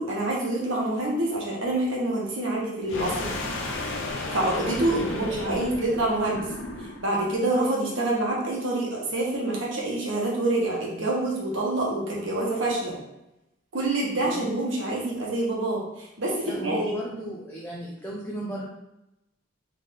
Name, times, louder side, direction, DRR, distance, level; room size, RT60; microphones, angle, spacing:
voice 1, 0.0-3.3 4.3-6.4 7.0-13.0 13.7-16.8, right 2 dB, 85° right, -3 dB, 1.4 m, -26 dB
sound 1, 2.9-7.2, left 2 dB, 85° left, 0.7 m, -33 dB
voice 2, 5.2-5.6 14.2-14.5 16.5-18.6, equal, 10° left, -4 dB, 0.6 m, -35 dB
3.6 x 3.5 x 3.8 m, 0.90 s
head